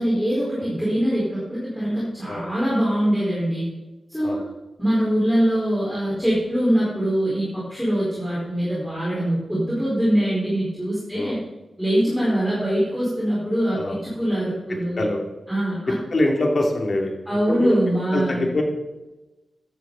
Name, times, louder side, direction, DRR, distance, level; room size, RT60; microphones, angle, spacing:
voice 1, 0.0-3.7 4.1-4.4 4.8-11.4 11.8-15.0 15.5-15.9 17.3-18.5, equal, ahead, -8 dB, 4.5 m, -23 dB
voice 2, 13.7-14.0 15.0-15.2 16.1-17.1 17.5-17.8 18.1-18.6, left 1 dB, 45° left, 1 dB, 2.6 m, -23 dB
15.0 x 12.0 x 4.0 m, 1.1 s
wide cardioid pair, 125°, 0 cm